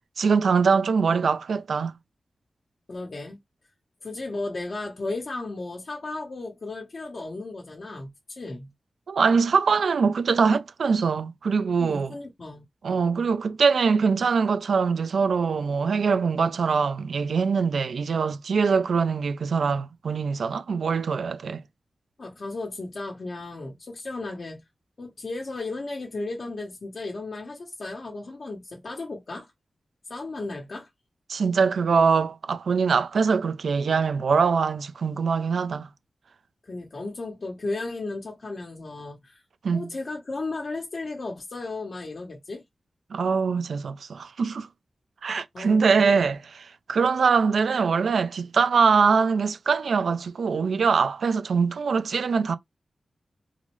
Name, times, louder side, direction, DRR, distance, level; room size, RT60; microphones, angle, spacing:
voice 1, 0.2-1.9 9.1-12.2 12.8-21.6 31.3-35.9 39.6-39.9 43.1-44.7 45.2-52.5, right 5 dB, 85° right, 0.4 m, -23 dB
voice 2, 2.9-3.4 4.0-8.7 11.8-12.6 22.2-24.6 25.0-29.5 30.1-30.9 36.6-39.4 39.7-42.6 45.5-45.8 46.1-46.3, left 2 dB, 55° left, 0.9 m, -35 dB
3.8 x 2.0 x 3.0 m
wide cardioid pair, 85°, 0 cm